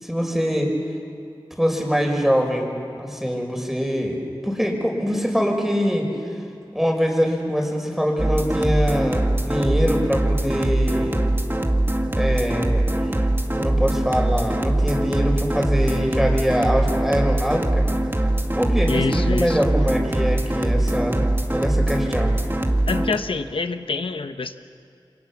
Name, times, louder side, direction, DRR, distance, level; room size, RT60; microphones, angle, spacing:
voice 1, 0.0-0.7 1.6-6.1 6.7-11.2 12.1-12.9 13.6-17.8 18.5-21.2 21.5-22.3, equal, 5° right, 1 dB, 5.7 m, -23 dB
sound 1, 8.2-23.2, right 1 dB, 25° right, 2.2 m, -22 dB
voice 2, 18.9-19.6 22.9-24.6, left 4 dB, 85° left, 9 dB, 1.1 m, -26 dB
28.0 x 25.0 x 7.4 m, 2.5 s
wide cardioid pair, 45°, 9 cm